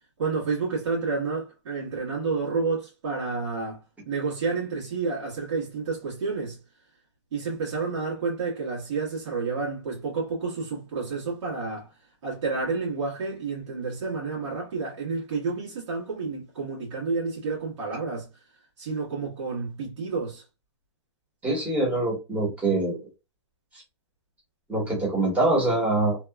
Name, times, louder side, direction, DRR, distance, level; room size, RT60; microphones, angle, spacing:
voice 1, 0.2-3.8 4.0-6.6 7.3-11.9 12.2-18.3 18.8-20.4, right 4 dB, 75° right, 1.4 m, -30 dB
voice 2, 21.4-23.0 24.7-26.2, right 2 dB, 10° right, 1.1 m, -24 dB
2.8 x 2.3 x 2.2 m
hypercardioid pair, 160°, 15 cm